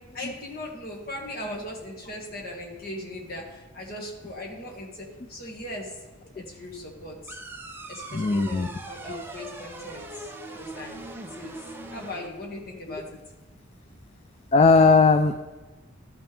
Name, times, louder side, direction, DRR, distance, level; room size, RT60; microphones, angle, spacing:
voice 1, 0.1-5.9 6.4-7.4 7.9-10.3 10.5-11.0 11.4-11.5 11.9-13.2, left 1 dB, 50° left, -1 dB, 2.0 m, -38 dB
sound 1, 7.3-12.3, right 2 dB, 10° right, 0.6 m, -40 dB
voice 2, 8.1-8.7 9.1-9.2 14.5-15.3, left 4 dB, 30° left, 8 dB, 0.3 m, -18 dB
13.0 x 6.0 x 3.5 m, 1.2 s
head